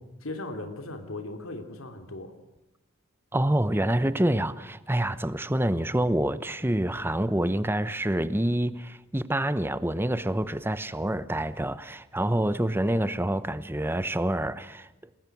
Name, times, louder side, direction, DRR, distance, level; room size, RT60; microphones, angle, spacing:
voice 1, 0.2-2.3, left 2 dB, 90° left, 3.0 m, -37 dB
voice 2, 3.3-14.9, right 1 dB, 10° right, 0.9 m, -27 dB
27.5 x 21.0 x 6.1 m
head